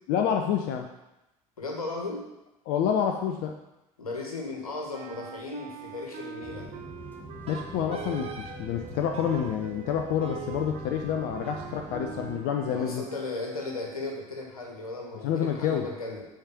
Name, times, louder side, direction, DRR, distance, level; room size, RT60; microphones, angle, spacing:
voice 1, 0.1-0.9 2.7-3.6 7.5-13.0 15.2-15.9, left 8 dB, 60° left, 4 dB, 0.8 m, -28 dB
voice 2, 1.6-2.2 4.0-6.7 12.7-16.3, left 3 dB, 85° left, 0 dB, 1.7 m, -36 dB
sound 1, 4.9-14.1, right 8 dB, 55° right, 1.0 m, -43 dB
sound 2, 6.4-12.3, right 1 dB, 10° left, 1.9 m, -44 dB
Wind instrument woodwind instrument, 7.5-8.6 9.1-9.6 10.2-13.2, right 5 dB, 35° right, 1.5 m, -45 dB
8.8 x 5.1 x 5.9 m, 0.93 s
figure-of-eight pair, 60°, 18 cm